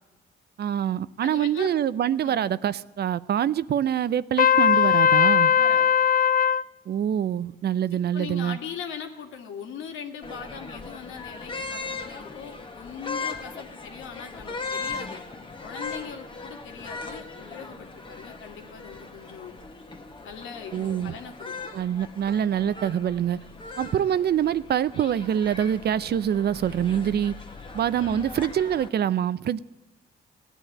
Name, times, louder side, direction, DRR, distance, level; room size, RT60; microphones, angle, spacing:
voice 1, 0.6-5.5 6.9-8.6 20.7-21.1 21.7-23.4 23.8-27.3 27.7-29.6, right 9 dB, 55° right, 17 dB, 0.6 m, -25 dB
voice 2, 1.2-1.7 2.2-2.4 5.5-6.0 8.1-15.2 15.6-19.6 20.2-21.5 28.0-28.3, left 7 dB, 80° left, 4 dB, 2.3 m, -40 dB
Trumpet, 4.4-6.6, left 8 dB, 45° left, 0.5 m, -19 dB
sound 1, 10.2-28.9, left 4 dB, 25° left, 1.8 m, -39 dB
16.5 x 10.0 x 8.7 m, 1.1 s
cardioid pair, 90°, 20 cm